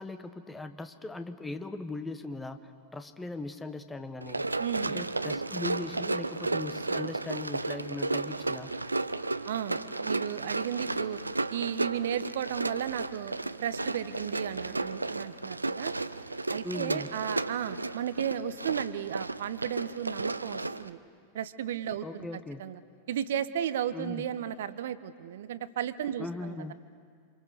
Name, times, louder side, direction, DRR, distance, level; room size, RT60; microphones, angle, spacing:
voice 1, 0.0-4.4 4.9-8.7 16.6-17.1 22.0-22.6 23.9-24.3 26.2-26.7, left 2 dB, 10° left, 9 dB, 1.3 m, -39 dB
Run, 4.2-20.9, right 2 dB, 80° right, 0.6 m, -33 dB
voice 2, 4.6-5.1 9.5-11.2 11.5-15.9 16.5-21.0 21.3-22.3 22.6-22.8 23.1-26.7, right 10 dB, 60° right, 14 dB, 0.9 m, -34 dB
28.0 x 26.5 x 6.7 m, 2.1 s
figure-of-eight pair, 90°, 0 cm